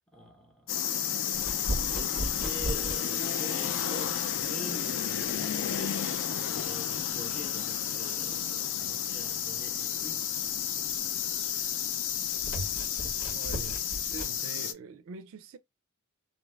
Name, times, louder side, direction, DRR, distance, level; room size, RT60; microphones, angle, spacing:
voice 1, 0.1-0.8 1.6-6.0 6.4-10.2, left 1 dB, ahead, 0.7 m, -45 dB
sound 1, 0.7-14.7, left 9 dB, 55° left, 0.4 m, -31 dB
sound 2, 1.3-14.4, right 1 dB, 75° left, 1.4 m, -40 dB
voice 2, 13.3-15.6, right 5 dB, 65° right, 0.3 m, -44 dB
2.7 x 2.2 x 3.2 m
head